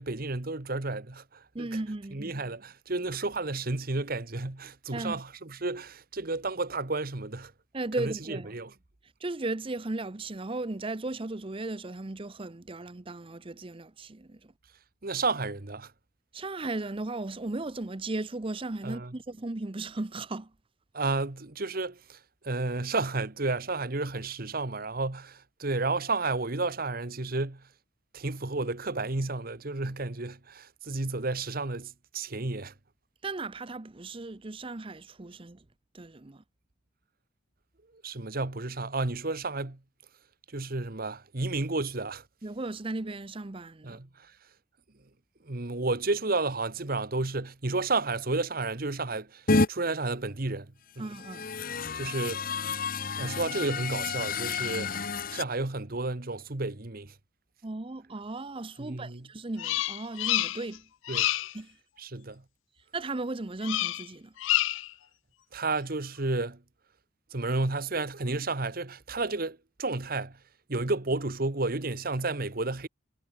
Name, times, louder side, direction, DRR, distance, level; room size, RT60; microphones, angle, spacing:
voice 1, 0.0-1.7 2.1-7.5 8.0-8.7 15.0-15.9 18.8-19.1 20.9-22.2 22.4-27.6 28.1-32.7 38.0-39.8 40.5-42.2 43.8-44.3 45.4-51.1 51.9-52.4 53.2-55.0 55.3-57.1 58.8-59.3 61.1-61.3 62.0-62.4 65.5-66.6 67.3-70.4 70.7-72.9, right 3 dB, 50° right, 1.4 m, -32 dB
voice 2, 1.5-2.3 4.9-5.2 7.7-8.5 9.2-14.5 16.3-20.5 33.2-35.6 35.9-36.4 42.4-44.0 51.0-51.5 57.6-60.9 61.5-61.7 62.9-64.3, right 2 dB, 30° right, 0.7 m, -36 dB
sound 1, 49.5-49.7 51.1-55.4, left 3 dB, 45° left, 1.3 m, -30 dB
Bird vocalization bird call bird song, 59.6-60.8 61.0-61.6 63.6-64.1 64.4-64.9, left 15 dB, 75° left, 0.4 m, -28 dB
head